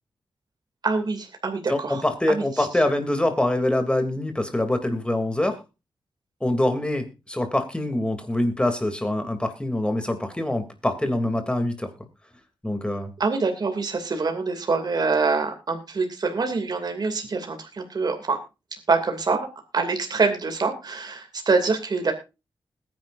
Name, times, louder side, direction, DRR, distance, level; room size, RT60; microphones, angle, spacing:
voice 1, 0.8-2.7 13.2-18.4 18.9-19.5 19.7-22.1, right 4 dB, 50° right, 5 dB, 2.6 m, -25 dB
voice 2, 1.7-5.6 6.4-11.9 12.6-13.1, left 1 dB, 10° left, 7 dB, 2.8 m, -24 dB
20.5 x 10.5 x 2.6 m, 0.27 s
wide cardioid pair, 95°, 9 cm